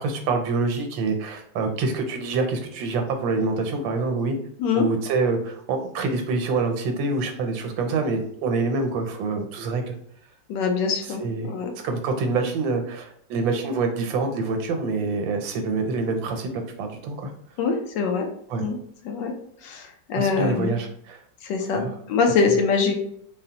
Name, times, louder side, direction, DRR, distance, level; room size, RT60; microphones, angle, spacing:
voice 1, 0.0-4.4 4.7-9.9 11.1-11.5 11.8-17.3 18.5-18.7 20.2-21.2 21.7-21.9, right 3 dB, 85° right, 5 dB, 1.4 m, -26 dB
voice 2, 10.5-11.7 17.6-18.3 18.6-18.8 19.0-19.3 19.6-20.7 21.4-21.8 22.1-22.9, left 5 dB, 75° left, 3 dB, 1.2 m, -23 dB
3.9 x 2.0 x 2.8 m, 0.66 s
omnidirectional pair, 2.0 m